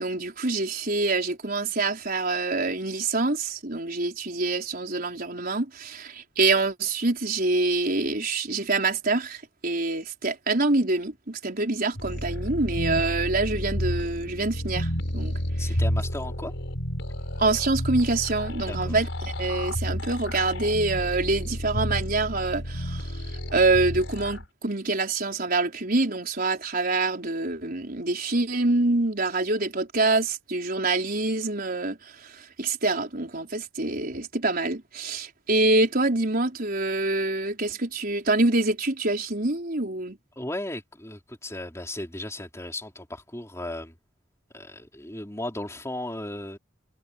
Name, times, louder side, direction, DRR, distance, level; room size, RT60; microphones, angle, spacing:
voice 1, 0.0-15.4 17.4-23.1 23.5-40.2, right 2 dB, 50° right, 4.7 m, -26 dB
sound 1, 12.0-24.4, equal, 70° left, 6.1 m, -31 dB
voice 2, 15.6-16.5 18.7-19.0 40.4-43.9 44.5-46.6, left 1 dB, 15° left, 4.0 m, -35 dB
head